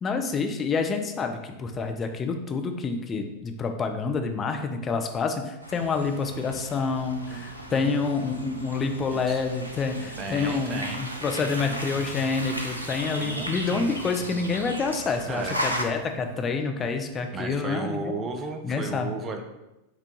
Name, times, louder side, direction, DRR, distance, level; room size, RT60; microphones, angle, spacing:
voice 1, 0.0-18.1 18.6-19.1, left 4 dB, 25° left, 5 dB, 0.4 m, -28 dB
sound 1, 5.6-15.8, equal, 85° right, 0.4 m, -36 dB
voice 2, 7.3-8.1 9.1-9.4 10.2-11.1 11.7-11.8 13.2-13.9 15.3-15.6 17.3-19.4, right 3 dB, 25° right, 5 dB, 0.5 m, -35 dB
sound 2, 10.1-10.5 10.8-10.9 11.2-11.3 11.6-13.3 13.6-14.5 14.8-16.5 16.8-17.2 17.6-17.7, equal, 70° left, 1.3 m, -47 dB
5.7 x 2.3 x 2.9 m, 0.95 s
figure-of-eight pair, 90°, 0 cm